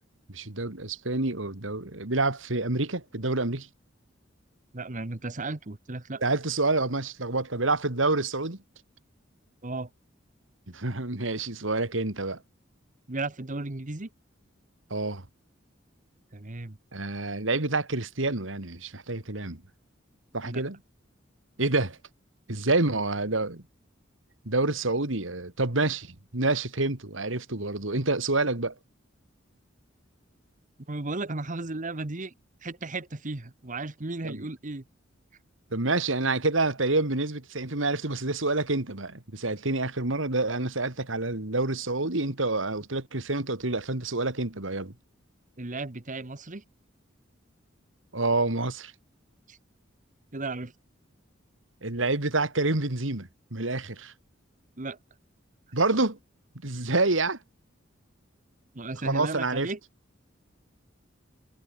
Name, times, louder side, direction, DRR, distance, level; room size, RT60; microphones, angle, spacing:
voice 1, 0.3-3.7 6.2-8.6 10.7-12.4 14.9-15.2 16.9-19.6 20.3-20.8 21.6-22.0 22.5-23.6 24.4-28.7 34.2-34.5 35.7-44.9 48.1-48.9 51.8-54.1 55.7-56.2 56.6-57.4 59.1-59.7, right 2 dB, 75° right, 2.7 m, -28 dB
voice 2, 4.7-6.2 9.6-9.9 13.1-14.1 16.3-16.8 20.4-20.6 30.9-32.3 32.6-34.8 45.6-46.6 49.5-49.6 50.3-50.7 54.8-55.0 58.7-59.8, right 2 dB, 40° right, 1.3 m, -35 dB
head